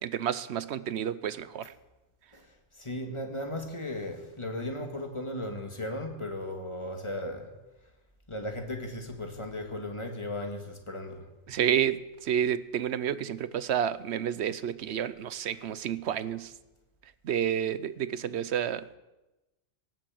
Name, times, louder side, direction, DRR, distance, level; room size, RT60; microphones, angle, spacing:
voice 1, 0.0-1.7 11.5-16.5 17.2-18.9, right 9 dB, 65° right, 15 dB, 0.9 m, -30 dB
voice 2, 2.3-7.5 7.8-7.9 8.3-11.3 15.5-15.6, left 1 dB, 25° left, 3 dB, 2.1 m, -36 dB
18.0 x 9.2 x 7.7 m, 1.0 s
omnidirectional pair, 1.3 m